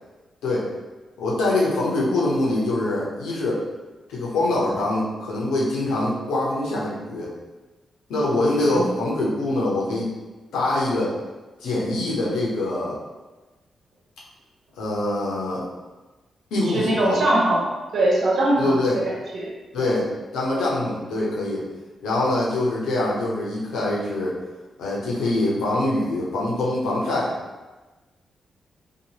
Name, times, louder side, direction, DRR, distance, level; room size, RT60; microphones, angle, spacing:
voice 1, 1.2-3.6 4.1-7.3 8.1-10.1 10.5-11.1 11.6-13.0 14.8-15.6 16.5-17.2 18.5-19.0 19.7-20.1 20.3-21.6 22.0-24.4 24.8-27.3, left 2 dB, 80° left, -6 dB, 0.8 m, -24 dB
voice 2, 16.7-17.7 17.9-18.7 19.3-19.5 19.8-19.9, right 1 dB, 65° right, -4 dB, 0.8 m, -21 dB
2.9 x 2.4 x 2.9 m, 1.2 s
hypercardioid pair, 40°, 0 cm